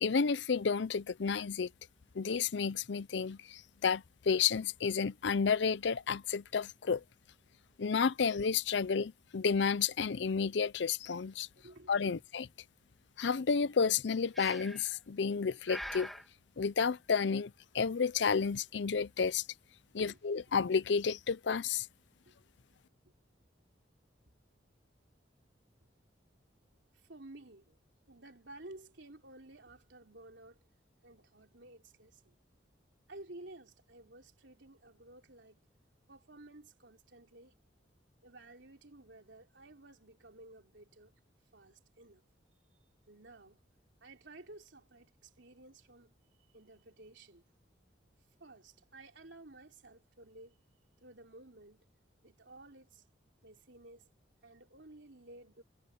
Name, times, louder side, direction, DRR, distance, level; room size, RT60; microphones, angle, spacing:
voice 1, 0.0-1.7 2.1-7.0 7.8-11.5 11.9-12.4 13.2-16.1 16.6-19.4 19.9-21.9, left 5 dB, 70° left, 0.5 m, -31 dB
voice 2, 11.6-12.2 19.9-20.2 22.3-22.4 23.0-23.1 26.9-27.8 28.1-30.7 31.0-32.3 33.1-35.6 36.1-37.5 38.2-41.1 41.5-42.2 42.7-43.6 44.0-46.1 46.5-47.4 48.4-50.6 51.0-51.8 52.2-53.1 53.4-54.1 54.4-55.6, right 2 dB, 75° right, 3.4 m, -54 dB
Breathing, 14.3-15.0 15.7-16.3, equal, ahead, 2.2 m, -43 dB
head